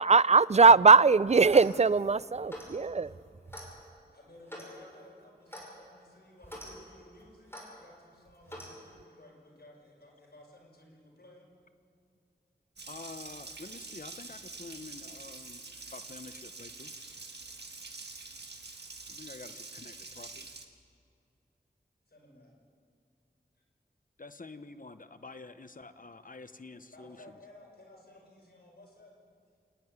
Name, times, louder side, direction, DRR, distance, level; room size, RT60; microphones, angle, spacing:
voice 1, 0.0-3.1, right 4 dB, 40° right, 19 dB, 0.4 m, -20 dB
Clock, 1.4-1.8 2.5-2.8 3.5-3.7 4.5-4.7 5.5-5.7 6.4-6.7 7.5-7.7 8.5-8.7, equal, 15° left, 6.1 m, -44 dB
voice 2, 4.1-11.5 22.1-22.5 26.9-29.2, left 1 dB, 70° left, -1 dB, 5.8 m, -56 dB
Water tap faucet, 12.8-20.6, right 3 dB, 85° right, 1.5 m, -46 dB
voice 3, 12.9-15.6 15.9-16.9 19.1-20.5 24.2-27.4, left 3 dB, 50° left, 10 dB, 1.0 m, -48 dB
27.0 x 10.5 x 9.6 m, 2.5 s
wide cardioid pair, 55°, 17 cm